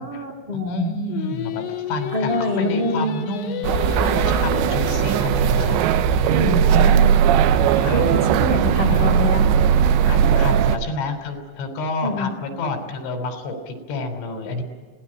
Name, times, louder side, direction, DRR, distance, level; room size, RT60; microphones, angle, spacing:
voice 1, 0.0-1.0 2.1-3.2 6.3-7.1 7.9-8.0 8.3-9.4 12.0-12.3, left 1 dB, 25° right, 2 dB, 3.2 m, -25 dB
voice 2, 0.5-5.8 6.2-6.4 7.8-8.2 8.9-9.2 10.0-14.6, left 3 dB, 85° left, 6 dB, 5.8 m, -30 dB
Singing, 1.1-6.2, left 13 dB, 65° left, 2.5 m, -31 dB
sound 1, 3.6-10.8, right 8 dB, 80° right, 3.1 m, -18 dB
25.0 x 18.0 x 8.8 m, 1.4 s
omnidirectional pair, 5.2 m